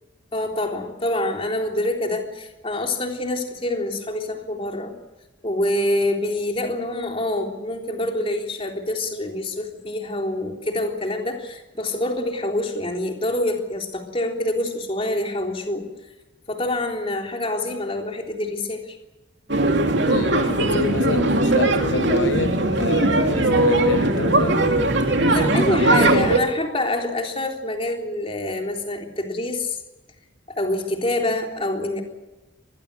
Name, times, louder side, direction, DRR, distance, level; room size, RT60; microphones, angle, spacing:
voice 1, 0.3-4.9 5.4-15.9 16.5-19.0 25.3-29.8 30.5-32.0, left 1 dB, 30° left, 3.6 m, -26 dB
sound 1, 19.5-26.4, right 2 dB, 65° right, 2.9 m, -19 dB
voice 2, 19.9-24.7, left 3 dB, 65° left, 1.0 m, -28 dB
25.5 x 21.0 x 6.9 m
head